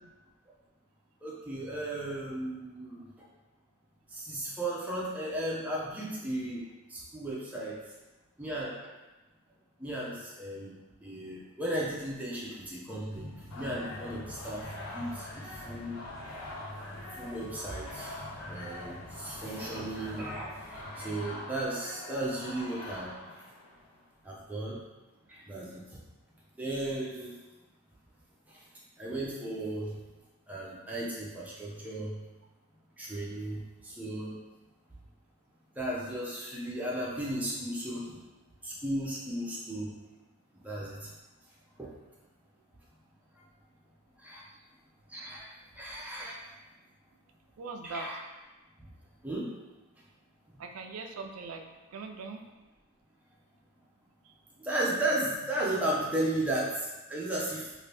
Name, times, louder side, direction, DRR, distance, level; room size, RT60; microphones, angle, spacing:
voice 1, 1.2-3.3 4.1-7.8 8.4-8.9 9.8-16.0 17.2-18.2 18.5-23.4 24.2-24.8 25.3-26.0 26.6-27.4 28.5-28.7 29.0-30.0 30.5-32.2 33.0-34.4 35.7-38.2 38.6-40.0 40.5-41.1 41.8-41.9 44.2-44.4 45.1-45.5 45.7-46.5 47.8-48.1 48.8-48.9 49.2-49.5 50.5-50.6 54.6-57.7, right 1 dB, 5° right, -6 dB, 0.5 m, -35 dB
sound 1, 13.1-21.3, left 1 dB, 25° left, 1.2 m, -47 dB
sound 2, 13.5-24.0, left 1 dB, 90° left, 0.6 m, -44 dB
voice 2, 19.6-19.9 47.6-48.1 50.6-52.4 54.3-54.4, right 4 dB, 80° right, 4 dB, 0.4 m, -42 dB
2.7 x 2.6 x 3.2 m, 1.1 s
head